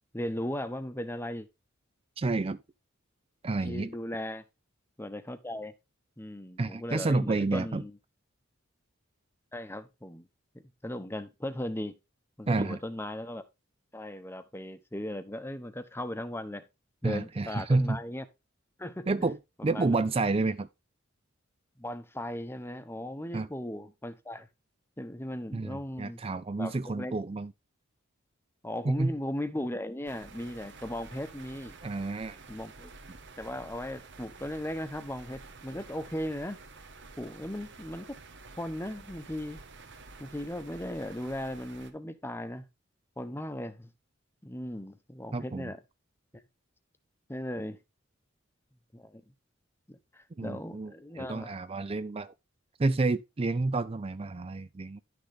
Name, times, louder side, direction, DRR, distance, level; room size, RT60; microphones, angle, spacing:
voice 1, 0.1-1.5 3.6-4.4 5.0-5.7 6.2-8.0 9.5-10.3 10.8-12.0 12.4-13.4 13.9-16.6 17.0-18.2 18.8-19.1 19.6-20.0 21.8-24.5 25.0-26.2 26.6-27.1 28.6-31.7 32.5-32.9 33.4-36.6 37.2-38.1 38.6-39.6 40.2-42.7 43.2-43.9 44.4-45.8 47.3-47.8 48.9-49.2 50.1-51.6, left 1 dB, 10° left, 0.9 m, -37 dB
voice 2, 2.2-2.6 3.4-3.9 6.6-7.8 12.5-12.8 17.0-18.0 19.1-19.4 19.6-20.7 23.3-23.5 25.5-27.5 28.8-29.1 31.8-32.4 45.3-45.7 50.4-52.3 52.8-55.0, right 3 dB, 30° right, 0.4 m, -29 dB
sound 1, 30.1-41.9, right 3 dB, 60° right, 1.5 m, -50 dB
11.0 x 6.6 x 3.6 m
head